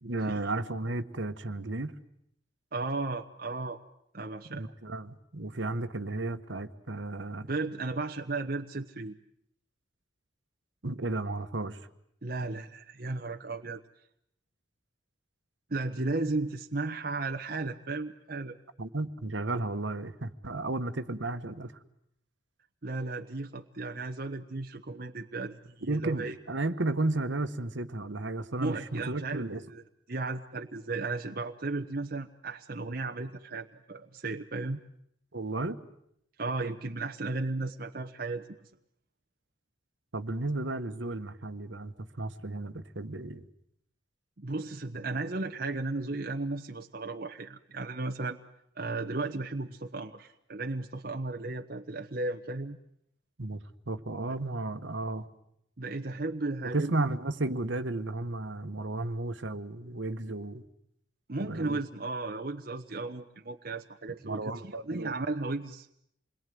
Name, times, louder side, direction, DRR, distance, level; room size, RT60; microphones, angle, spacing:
voice 1, 0.0-1.9 4.5-7.5 10.8-11.8 18.8-21.7 25.8-29.6 35.3-35.8 40.1-43.5 53.4-55.3 56.7-60.6 61.4-61.8 64.2-65.1, right 2 dB, 75° right, 10 dB, 1.4 m, -33 dB
voice 2, 2.7-3.8 4.1-4.7 7.5-9.1 12.2-13.8 15.7-18.6 22.8-26.4 28.6-29.8 30.1-34.8 36.4-38.5 44.4-48.4 48.8-52.8 55.8-56.9 61.3-65.9, right 3 dB, 50° right, 4 dB, 1.0 m, -35 dB
28.0 x 22.0 x 9.4 m, 0.75 s
head